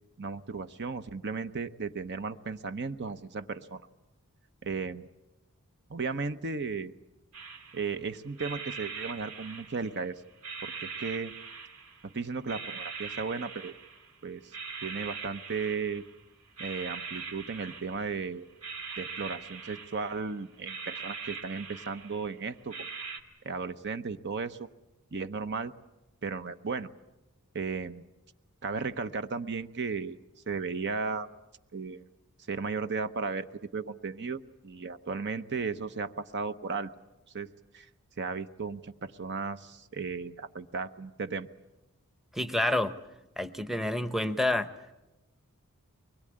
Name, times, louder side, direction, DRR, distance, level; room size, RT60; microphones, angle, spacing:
voice 1, 0.2-3.9 4.6-5.1 5.9-6.9 7.7-10.2 10.6-11.3 12.0-13.7 14.2-14.5 14.8-16.0 16.6-18.5 19.0-22.9 23.4-24.7 25.1-25.7 26.2-26.9 27.5-28.0 28.6-30.2 30.5-31.3 31.7-32.0 32.5-33.5 33.7-36.9 37.3-37.9 38.2-41.5, right 4 dB, 50° right, 11 dB, 0.8 m, -35 dB
sound 1, 7.3-8.0 8.4-10.1 10.4-12.1 12.5-14.1 14.5-16.2 16.6-18.2 18.6-20.3 20.7-22.3 22.7-23.2, right 5 dB, 75° right, 2.4 m, -42 dB
voice 2, 42.3-42.9 43.4-44.7, left 1 dB, ahead, 11 dB, 0.9 m, -28 dB
24.0 x 21.0 x 8.7 m, 1.0 s
head